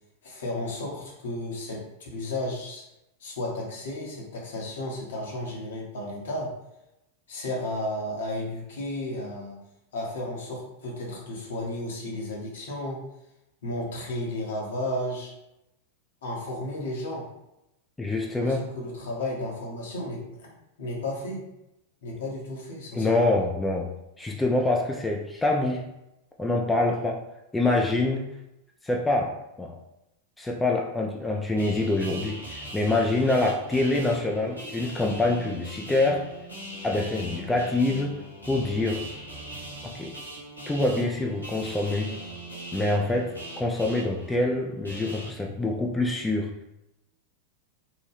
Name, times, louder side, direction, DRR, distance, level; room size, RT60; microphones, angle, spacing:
voice 1, 0.2-2.8 3.2-6.5 7.3-9.6 9.9-13.0 13.6-15.3 16.2-17.2 18.4-21.4 22.0-23.3, left 1 dB, 60° left, -2 dB, 0.9 m, -33 dB
voice 2, 18.0-18.7 22.9-23.9 24.2-25.8 26.4-27.2 27.5-28.3 28.8-29.8 30.4-36.3 36.8-38.2 38.5-39.1 39.8-40.1 40.7-42.1 42.7-46.5, left 2 dB, 10° left, 0 dB, 0.3 m, -25 dB
sound 1, 31.6-45.3, right 1 dB, 85° right, 0.8 m, -40 dB
2.8 x 2.2 x 3.3 m, 0.89 s
figure-of-eight pair, 90°, 0 cm